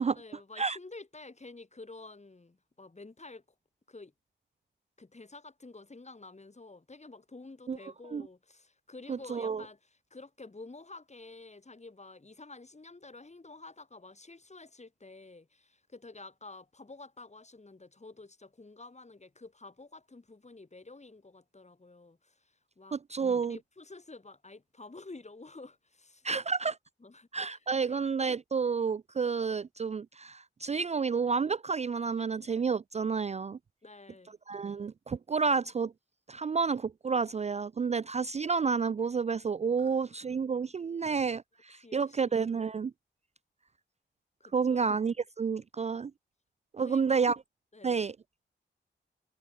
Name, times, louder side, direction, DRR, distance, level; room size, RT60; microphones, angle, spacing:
voice 1, 0.1-3.4 3.9-4.1 5.0-23.0 23.4-26.3 27.0-28.0 33.8-34.4 39.8-40.2 41.8-42.3 44.7-45.0 46.8-47.4 47.7-48.1, left 3 dB, 35° left, 4.5 m, -50 dB
voice 2, 9.1-9.6 22.9-23.6 26.2-26.8 27.3-33.6 34.5-35.9 36.3-42.9 44.5-46.1 46.7-47.4 47.8-48.1, right 5 dB, 35° right, 0.4 m, -30 dB
cardioid pair, 55°, 20 cm